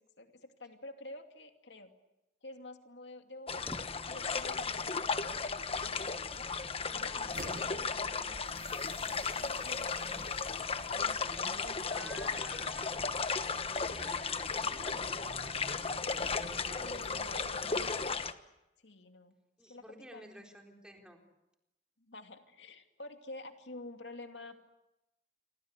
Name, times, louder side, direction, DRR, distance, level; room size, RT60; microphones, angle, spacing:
voice 1, 0.0-1.9 2.4-6.5 6.9-10.5 10.9-12.5 16.8-18.1 18.8-19.3 19.7-19.8 20.1-20.5 22.0-24.6, left 2 dB, 80° left, 5 dB, 2.6 m, -50 dB
sound 1, 3.5-18.3, left 5 dB, 35° left, 1.3 m, -35 dB
sound 2, 3.6-4.3 5.0-5.2 6.0-6.1 6.3-6.6 7.9-8.0 8.2-8.3 8.5-8.6 10.1-10.7 12.9-13.6 14.9-15.5 16.7-17.2, equal, 10° left, 1.7 m, -52 dB
voice 2, 6.8-7.3 11.9-13.0 13.8-15.4 19.6-21.2, equal, 5° right, 2 dB, 4.1 m, -52 dB
sound 3, 7.3-18.2, right 2 dB, 55° right, 1.7 m, -51 dB
28.5 x 25.5 x 8.3 m, 0.93 s
head